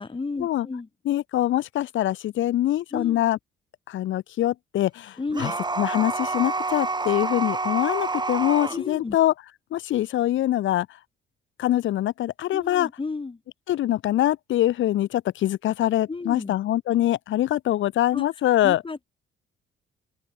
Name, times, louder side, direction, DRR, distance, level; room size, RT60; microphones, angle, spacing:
voice 1, 0.0-0.9 2.9-3.2 5.2-5.6 8.7-9.2 12.5-13.4 16.1-16.5 18.1-18.2 18.6-19.1, left 3 dB, 25° left, 6.6 m, -32 dB
voice 2, 1.0-3.4 3.9-9.3 9.7-10.9 11.6-12.9 13.7-18.8, left 13 dB, 75° left, 1.1 m, -24 dB
sound 1, 5.3-8.8, right 3 dB, 20° right, 2.9 m, -28 dB
open air
cardioid pair, 90°, 20 cm